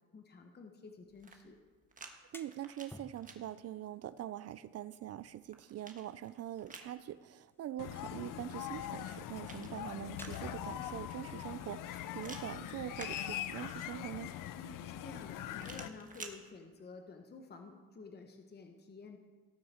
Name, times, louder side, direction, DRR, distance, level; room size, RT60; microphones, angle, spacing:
voice 1, 0.1-1.6 14.6-19.2, left 4 dB, 30° left, 1.1 m, -51 dB
sound 1, 1.1-2.1 2.4-3.4 5.1-6.9 8.9-10.7 12.2-13.8 15.6-16.4, right 4 dB, 25° right, 1.3 m, -52 dB
sound 2, 2.0-13.3, left 1 dB, 5° left, 0.7 m, -60 dB
voice 2, 2.3-14.3, right 12 dB, 50° right, 0.4 m, -44 dB
sound 3, 7.8-15.9, left 11 dB, 70° left, 0.6 m, -42 dB
18.5 x 6.4 x 4.3 m
cardioid pair, 95°, 33 cm